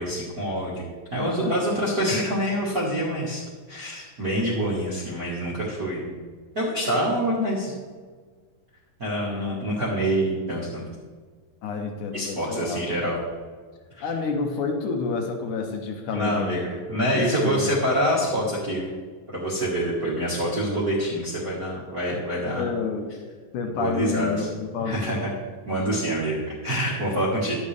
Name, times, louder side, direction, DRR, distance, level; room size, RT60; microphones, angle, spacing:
voice 1, 0.0-3.4 3.7-6.1 6.5-7.7 9.0-10.8 12.1-13.2 14.0-14.1 16.1-18.8 19.3-22.6 23.8-24.5 24.8-25.3 25.6-27.5, equal, 45° right, -7 dB, 1.2 m, -26 dB
voice 2, 11.6-12.8 14.0-16.6 17.1-17.6 18.2-18.6 22.6-23.1 23.5-25.2, left 5 dB, 75° left, 3 dB, 2.2 m, -29 dB
11.5 x 9.4 x 3.3 m, 1.5 s
omnidirectional pair, 3.9 m